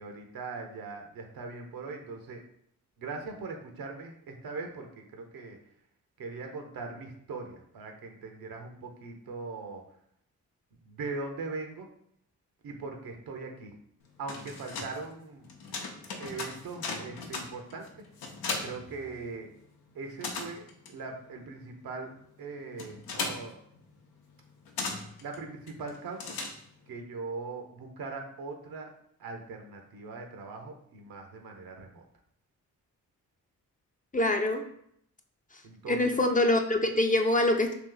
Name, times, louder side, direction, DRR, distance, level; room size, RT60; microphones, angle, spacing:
voice 1, 0.0-2.4 3.0-5.6 6.2-9.8 10.8-11.9 12.6-13.7 14.2-15.5 16.2-18.0 18.6-19.5 19.9-22.1 22.4-23.6 25.2-26.4 26.9-28.9 29.2-32.0 35.6-36.2, right 3 dB, 75° right, 3 dB, 0.8 m, -40 dB
sound 1, 14.0-19.6 19.9-27.0, left 3 dB, 85° left, 0.7 m, -39 dB
voice 2, 34.1-34.6 35.9-37.7, left 1 dB, 20° left, 4 dB, 0.5 m, -24 dB
3.0 x 2.8 x 3.8 m, 0.71 s
supercardioid pair, 50°, 36 cm